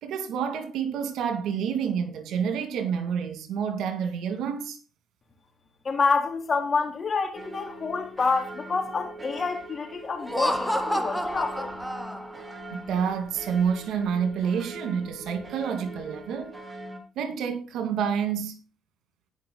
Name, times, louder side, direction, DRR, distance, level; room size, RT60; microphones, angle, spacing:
voice 1, 0.0-4.8 12.7-16.6 17.2-18.6, right 7 dB, 85° right, 2.1 m, -28 dB
voice 2, 5.8-11.7, left 4 dB, 40° left, 3.5 m, -27 dB
sound 1, 7.3-17.0, right 1 dB, 25° right, 2.9 m, -42 dB
Laughter, 10.2-12.5, equal, ahead, 1.6 m, -29 dB
17.5 x 5.9 x 3.9 m
cardioid pair, 90°, 0 cm